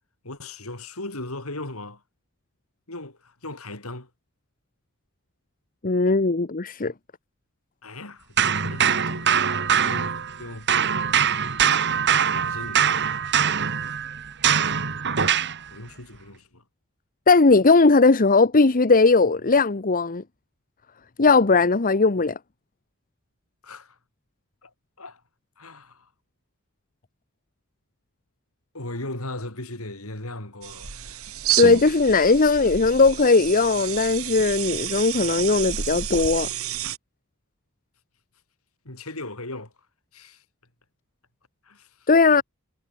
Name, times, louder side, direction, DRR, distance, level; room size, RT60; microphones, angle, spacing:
voice 1, 0.2-2.0 2.9-4.1 7.8-9.4 9.8-10.1 10.4-10.7 12.3-13.2 15.7-16.6 23.6-24.0 24.6-24.7 25.0-25.2 25.6-26.1 28.7-30.9 38.9-39.7 40.1-40.4 41.7-41.9, left 2 dB, 80° left, 6.9 m, -37 dB
voice 2, 5.8-6.9 17.3-20.2 21.2-22.4 31.6-36.5 42.1-42.4, left 3 dB, 40° left, 0.9 m, -18 dB
sound 1, 8.4-10.4 10.7-15.6, right 8 dB, 55° right, 2.7 m, -22 dB
sound 2, 30.6-37.0, right 9 dB, 80° right, 2.1 m, -30 dB
head